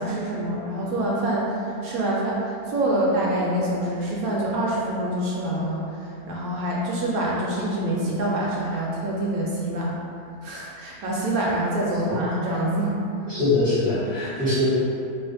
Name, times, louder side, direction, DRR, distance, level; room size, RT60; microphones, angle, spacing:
voice 1, 0.0-5.8 6.3-10.0 10.4-13.0 14.2-14.3, right 1 dB, 70° right, -4 dB, 0.9 m, -26 dB
voice 2, 13.3-14.7, left 2 dB, 5° right, -15 dB, 0.8 m, -23 dB
2.8 x 2.5 x 4.0 m, 2.6 s
omnidirectional pair, 1.7 m